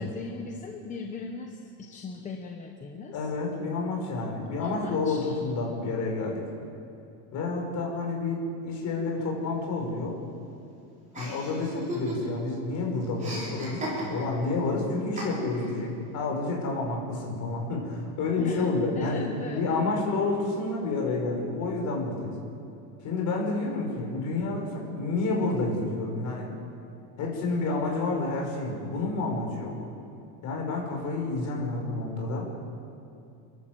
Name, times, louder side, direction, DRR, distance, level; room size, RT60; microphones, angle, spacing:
voice 1, 0.0-3.2 4.6-5.3 18.4-20.0, left 4 dB, 15° left, 1 dB, 1.0 m, -38 dB
voice 2, 3.1-6.4 7.3-10.2 11.1-19.2 19.5-22.3 23.0-26.5 27.2-29.8 30.4-32.5, left 3 dB, 40° left, 0 dB, 5.3 m, -29 dB
Chuckle chortle, 11.1-12.5 12.8-14.4 15.2-15.7, equal, 15° right, 5.3 m, -36 dB
29.0 x 12.0 x 7.8 m, 2.6 s
cardioid pair, 180°, 44 cm